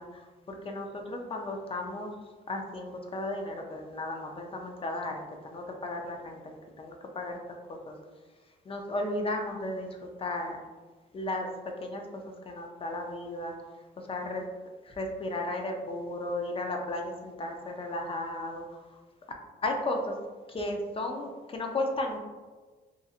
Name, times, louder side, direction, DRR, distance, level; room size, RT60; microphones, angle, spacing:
voice 1, 0.0-2.1 2.5-7.4 7.7-7.9 8.7-10.6 11.1-11.5 11.8-12.0 12.5-13.5 14.0-14.4 14.8-18.7 19.6-20.1 20.5-22.2, left 2 dB, 30° left, 3 dB, 0.4 m, -34 dB
2.7 x 2.5 x 2.4 m, 1.4 s
cardioid pair, 90°, 20 cm